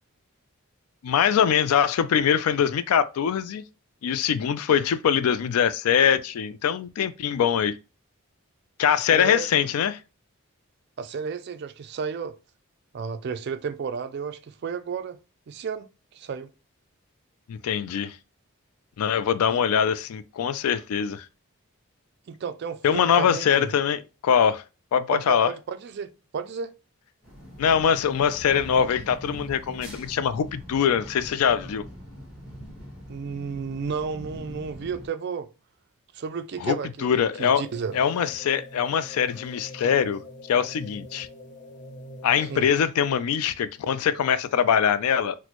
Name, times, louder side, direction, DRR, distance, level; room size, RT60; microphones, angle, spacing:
voice 1, 1.0-3.6 4.0-7.7 8.8-10.0 17.5-18.2 19.0-21.3 22.8-24.6 24.9-25.5 27.6-31.8 36.6-37.6 37.9-40.2 40.5-41.3 42.2-45.4, left 8 dB, 80° left, 0.3 m, -23 dB
voice 2, 9.1-9.5 11.0-12.4 12.9-15.2 15.5-16.5 19.5-19.6 22.3-23.7 25.1-26.7 33.1-35.5 36.1-37.1 37.4-37.9 42.5-42.7, right 6 dB, 50° right, 0.3 m, -32 dB
sound 1, 27.2-35.1, equal, 5° right, 1.0 m, -42 dB
sound 2, 37.4-42.8, left 1 dB, 50° left, 0.7 m, -44 dB
4.1 x 2.1 x 2.9 m
head